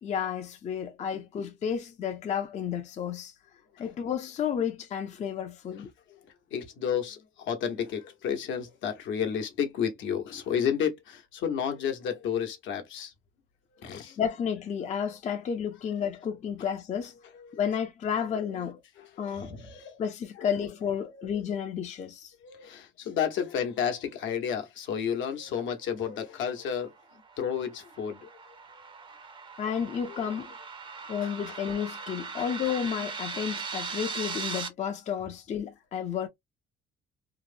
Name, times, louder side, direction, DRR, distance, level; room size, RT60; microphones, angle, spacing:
voice 1, 0.0-3.3 3.8-5.9 14.2-17.1 17.5-18.8 19.2-19.5 20.0-22.3 29.6-30.5 31.1-36.3, left 8 dB, 35° left, 0.5 m, -31 dB
voice 2, 6.5-13.1 13.8-14.2 17.4-17.6 18.5-18.6 19.0-20.0 21.0-21.2 22.4-26.9 27.4-28.3 30.2-30.4 31.2-31.6, left 8 dB, 70° left, 0.9 m, -32 dB
sound 1, 27.0-34.7, right 5 dB, 25° right, 0.5 m, -39 dB
2.9 x 2.0 x 2.5 m
cardioid pair, 130°, 20 cm